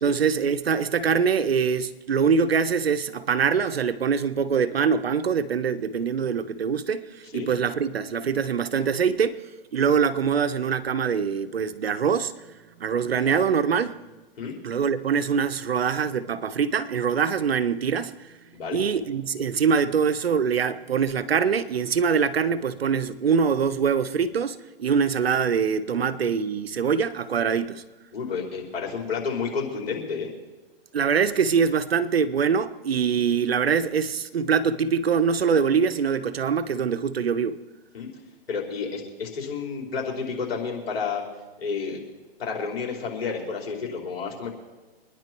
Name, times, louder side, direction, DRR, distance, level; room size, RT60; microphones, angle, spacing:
voice 1, 0.0-9.4 9.7-12.4 12.8-14.0 14.6-18.3 18.7-27.8 30.9-37.6, right 6 dB, 85° right, 1.2 m, -24 dB
voice 2, 28.1-30.3 37.9-38.1 38.5-41.2 41.6-42.0 42.4-44.5, left 5 dB, 80° left, 5.1 m, -30 dB
25.0 x 10.5 x 4.6 m
hypercardioid pair, 140°, 30 cm